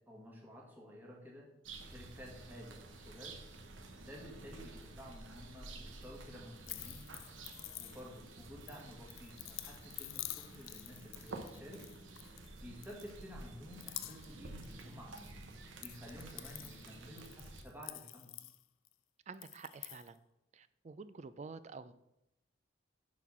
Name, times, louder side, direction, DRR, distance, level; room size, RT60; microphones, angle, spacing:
voice 1, 0.1-1.5 1.8-3.4 4.0-7.0 7.8-11.8 12.6-15.4 15.7-18.3, equal, 10° right, -3 dB, 1.5 m, -52 dB
sound 1, 1.6-17.6, right 2 dB, 80° right, 1.0 m, -51 dB
sound 2, 6.6-8.3 8.7-12.5 12.8-13.4 13.7-14.4 14.6-15.3 15.6-18.9 19.3-20.1, left 16 dB, 90° left, 0.4 m, -48 dB
voice 2, 19.3-20.2 20.5-21.9, right 4 dB, 35° right, 14 dB, 0.3 m, -49 dB
7.0 x 4.1 x 5.9 m, 0.88 s
head